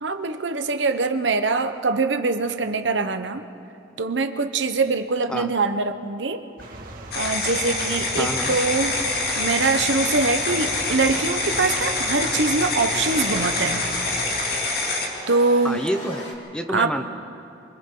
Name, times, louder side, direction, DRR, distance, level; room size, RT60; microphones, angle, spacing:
voice 1, 0.0-3.5 4.0-6.4 7.1-9.0 9.4-13.8 15.3-15.8 16.7-16.9, right 3 dB, 80° right, 8 dB, 1.0 m, -23 dB
sound 1, 6.6-14.4, right 1 dB, 50° right, 2.0 m, -37 dB
sound 2, 7.1-15.1, left 2 dB, 55° left, 2.5 m, -26 dB
voice 2, 8.2-8.6 15.6-17.1, equal, 5° left, 6 dB, 0.8 m, -28 dB
sound 3, 9.6-16.3, left 1 dB, 40° left, 3.2 m, -39 dB
28.5 x 24.0 x 3.9 m, 2.7 s
head